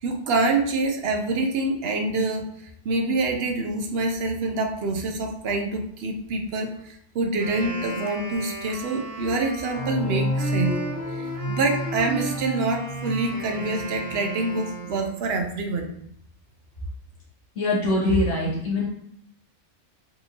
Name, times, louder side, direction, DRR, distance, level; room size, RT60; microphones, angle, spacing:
voice 1, 0.0-2.5 2.8-10.7 11.1-15.9, right 3 dB, 65° right, 3 dB, 0.7 m, -26 dB
Wind instrument woodwind instrument, 7.3-15.3, right 1 dB, 85° right, 1.4 m, -35 dB
sound 1, 9.7-14.3, left 1 dB, 30° left, 1.2 m, -31 dB
voice 2, 17.5-18.9, left 2 dB, 70° left, -4 dB, 1.6 m, -23 dB
3.8 x 2.5 x 2.9 m, 0.67 s
omnidirectional pair, 1.3 m